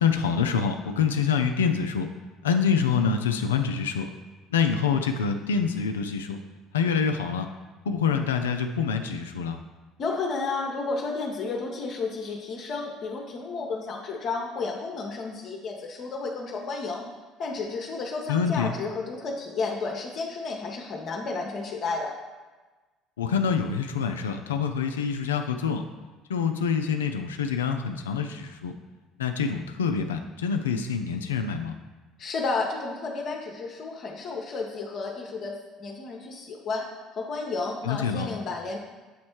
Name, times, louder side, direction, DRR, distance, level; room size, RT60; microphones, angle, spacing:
voice 1, 0.0-2.1 2.4-4.1 4.5-6.4 6.7-7.5 7.9-9.6 18.3-18.7 23.2-25.8 26.3-28.7 29.2-31.7 37.9-38.3, left 6 dB, 80° left, 6 dB, 0.3 m, -26 dB
voice 2, 10.0-17.0 17.4-22.1 32.2-36.8 37.1-38.8, left 4 dB, 50° left, 0 dB, 0.7 m, -32 dB
7.1 x 3.1 x 4.5 m, 1.3 s
figure-of-eight pair, 60°, 0 cm